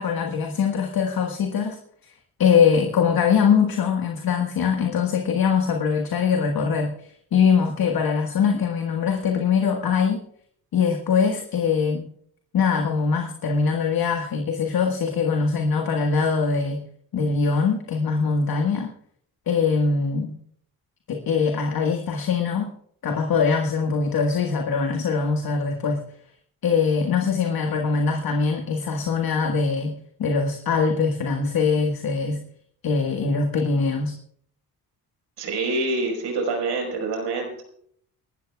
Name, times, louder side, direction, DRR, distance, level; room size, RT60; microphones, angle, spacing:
voice 1, 0.0-1.8 2.4-10.3 10.7-12.1 12.5-16.8 17.1-18.9 19.5-20.4 21.1-22.7 23.0-26.0 26.6-32.4 32.8-34.1, left 5 dB, 55° left, 3 dB, 1.7 m, -22 dB
voice 2, 35.4-37.6, right 3 dB, 70° right, 2 dB, 4.9 m, -26 dB
29.5 x 12.5 x 2.4 m, 0.64 s
hypercardioid pair, 50°, 43 cm